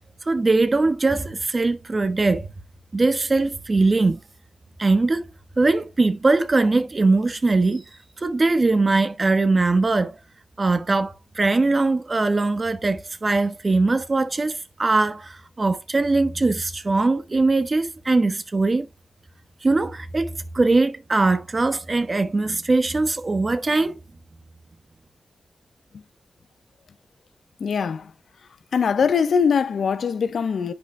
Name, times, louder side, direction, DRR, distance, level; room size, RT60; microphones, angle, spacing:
voice 1, 0.2-2.5 2.9-4.2 4.8-5.3 5.6-7.9 8.2-10.2 10.6-18.9 19.6-24.0, right 3 dB, 35° right, 1.2 m, -21 dB
voice 2, 27.6-28.1 28.7-30.7, left 6 dB, 75° left, 0.8 m, -22 dB
10.5 x 5.9 x 2.2 m
cardioid pair, 75°, 0 cm